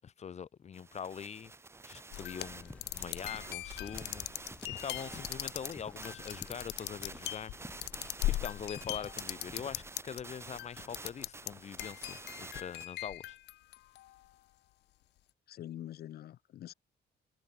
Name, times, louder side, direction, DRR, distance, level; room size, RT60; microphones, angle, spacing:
voice 1, 0.0-1.5 1.9-4.3 4.7-7.5 8.2-13.4, left 7 dB, 40° left, 2.0 m, -43 dB
sound 1, 0.7-12.9, right 3 dB, 15° right, 1.7 m, -49 dB
sound 2, 2.1-10.2 10.6-11.5 11.8-14.2, left 16 dB, 85° left, 0.4 m, -39 dB
sound 3, 2.5-9.9, left 1 dB, 10° left, 1.6 m, -52 dB
voice 2, 15.5-16.7, left 12 dB, 65° left, 0.9 m, -45 dB
cardioid pair, 155°, 17 cm